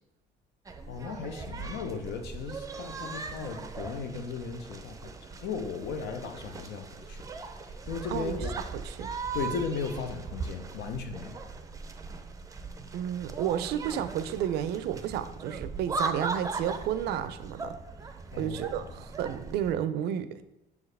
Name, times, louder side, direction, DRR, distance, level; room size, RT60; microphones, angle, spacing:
sound 1, 0.7-19.7, right 4 dB, 20° right, 0.5 m, -39 dB
voice 1, 0.9-7.3 7.6-8.5 9.3-11.4 18.3-18.9, left 5 dB, 75° left, 6 dB, 0.8 m, -36 dB
voice 2, 8.1-8.4 8.8-9.1 12.9-17.8 18.4-20.4, right 10 dB, 75° right, 13 dB, 0.4 m, -31 dB
6.6 x 4.7 x 3.3 m, 0.89 s
cardioid pair, 110°, 17 cm